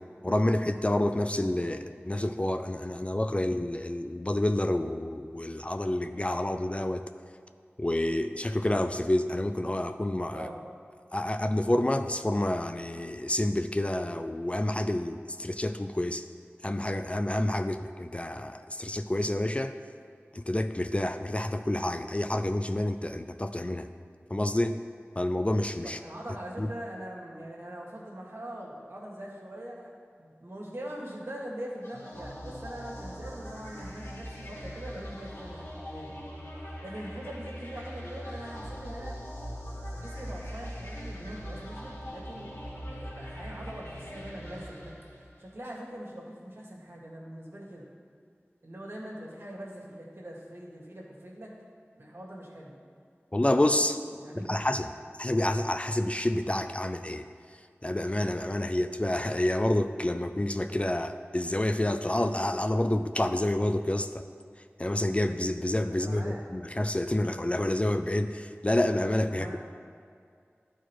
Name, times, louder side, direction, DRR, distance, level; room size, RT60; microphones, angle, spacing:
voice 1, 0.2-7.0 7.8-10.5 11.1-16.3 16.6-19.8 20.3-23.9 24.3-24.8 25.2-26.0 26.6-26.7 53.3-54.0 54.5-54.9 55.2-57.3 57.8-64.3 64.8-69.7, left 1 dB, 25° left, 8 dB, 0.4 m, -28 dB
voice 2, 25.8-29.9 30.2-36.2 36.6-39.2 39.9-44.9 45.4-47.9 48.6-51.5 51.9-52.7 54.1-54.7 65.9-66.4 69.3-69.6, right 1 dB, 65° right, -3 dB, 1.8 m, -42 dB
sound 1, 31.8-45.5, equal, 80° left, 2.0 m, -41 dB
12.5 x 4.6 x 4.5 m, 2.3 s
wide cardioid pair, 45°, 5 cm